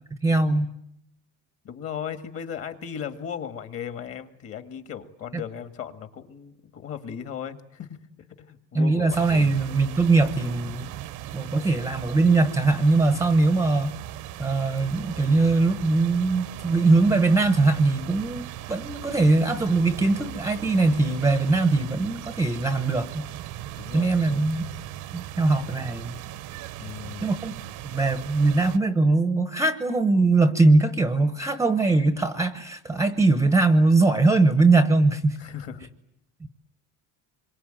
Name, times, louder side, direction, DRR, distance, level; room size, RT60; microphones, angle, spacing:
voice 1, 0.2-0.7 8.7-10.9 11.3-14.0 14.4-23.3 23.9-24.7 25.1-26.2 27.2-27.5 27.8-35.4 36.4-36.5, right 3 dB, 10° right, 11 dB, 1.0 m, -21 dB
voice 2, 1.6-9.6 23.8-24.5 26.8-27.3 35.4-35.9, left 8 dB, 35° left, 9 dB, 2.0 m, -37 dB
sound 1, 9.1-28.8, right 13 dB, 50° right, 1.0 m, -38 dB
26.5 x 23.5 x 9.1 m, 0.77 s
cardioid pair, 150°, 39 cm